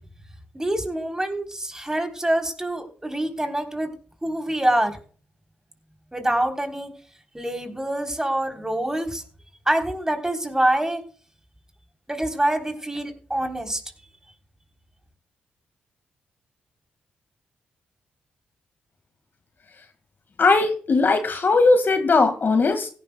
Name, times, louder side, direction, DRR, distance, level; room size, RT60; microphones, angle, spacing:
voice 1, 0.5-3.9 4.2-4.9 6.1-6.9 7.3-9.2 9.7-11.0 12.1-13.8, right 1 dB, 15° right, 5 dB, 3.4 m, -25 dB
voice 2, 20.4-22.9, left 3 dB, 50° left, 8 dB, 1.7 m, -19 dB
16.5 x 11.5 x 2.2 m, 0.41 s
hypercardioid pair, 45°, 4 cm